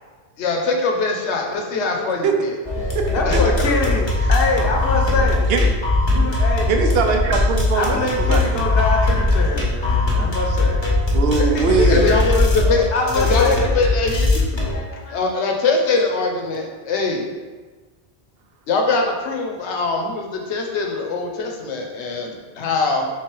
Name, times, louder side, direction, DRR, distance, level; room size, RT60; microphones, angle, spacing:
voice 1, 0.4-2.6 3.2-3.5 11.9-12.9 13.1-14.4 14.9-17.3 18.7-23.1, left 3 dB, 90° left, 1 dB, 1.0 m, -22 dB
sound 1, 2.7-14.8, left 2 dB, 30° left, 0.8 m, -20 dB
voice 2, 3.1-5.5 6.1-6.7 7.7-10.8 11.4-12.1 12.9-13.7 14.7-15.3, left 2 dB, 65° left, 0 dB, 0.9 m, -24 dB
voice 3, 6.7-8.4 11.1-12.1, right 5 dB, 70° right, 3 dB, 0.8 m, -20 dB
3.7 x 3.2 x 4.4 m, 1.3 s
omnidirectional pair, 1.1 m